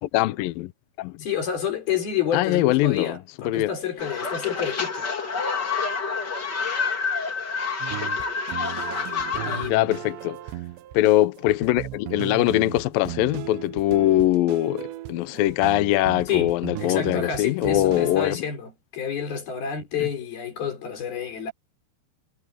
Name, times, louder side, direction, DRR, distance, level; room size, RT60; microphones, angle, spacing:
voice 1, 0.0-0.7 1.0-1.1 2.3-3.2 3.5-3.7 9.7-10.4 10.9-18.4, left 16 dB, 80° left, 2.1 m, -22 dB
voice 2, 1.2-5.1 9.5-10.0 16.3-21.5, left 8 dB, 60° left, 6.6 m, -29 dB
sound 1, 4.0-9.7, left 5 dB, 30° left, 2.8 m, -28 dB
sound 2, 7.8-18.4, right 16 dB, 85° right, 3.2 m, -36 dB
omnidirectional pair, 4.9 m